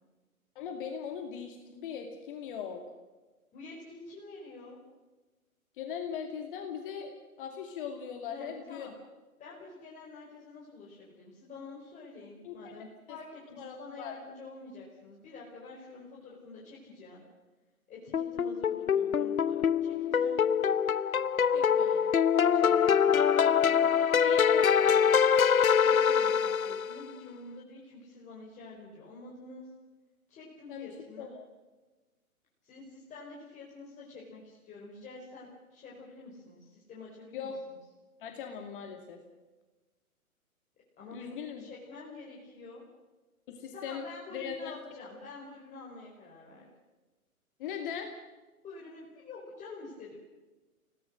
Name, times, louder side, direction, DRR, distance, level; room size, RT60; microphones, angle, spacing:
voice 1, 0.5-2.8 5.8-8.9 12.4-12.7 13.1-13.2 13.6-14.1 21.5-22.1 24.1-25.1 30.7-31.4 37.3-37.6 38.2-39.2 41.1-41.6 43.5-44.1 44.3-44.7 47.6-48.1, left 7 dB, 35° left, 4 dB, 2.5 m, -40 dB
voice 2, 3.5-4.8 8.3-8.9 9.4-17.2 17.9-20.4 22.5-23.9 25.8-29.7 30.3-31.3 32.6-37.8 41.0-42.8 43.7-46.7 48.6-50.2, left 3 dB, 15° left, -5 dB, 4.8 m, -48 dB
sound 1, 18.1-27.0, left 7 dB, 70° left, 0.8 m, -24 dB
29.5 x 18.0 x 6.6 m, 1.2 s
figure-of-eight pair, 125°, 43 cm